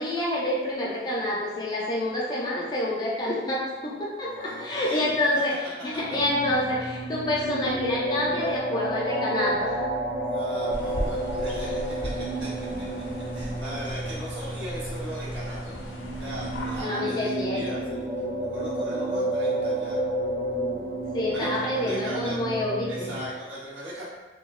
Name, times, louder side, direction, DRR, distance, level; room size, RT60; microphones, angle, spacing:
voice 1, 0.0-5.5 5.8-9.8 16.8-17.6 21.1-23.1, left 1 dB, 20° left, -5 dB, 0.4 m, -27 dB
voice 2, 4.2-5.3 10.2-12.8 13.3-18.1 18.4-20.0 21.3-22.4 22.9-24.0, equal, 80° right, -8 dB, 1.0 m, -38 dB
sound 1, 6.0-23.3, right 1 dB, 45° right, 1.3 m, -31 dB
sound 2, 10.7-16.8, left 1 dB, 70° left, 0.5 m, -37 dB
2.8 x 2.2 x 2.3 m, 1.3 s
head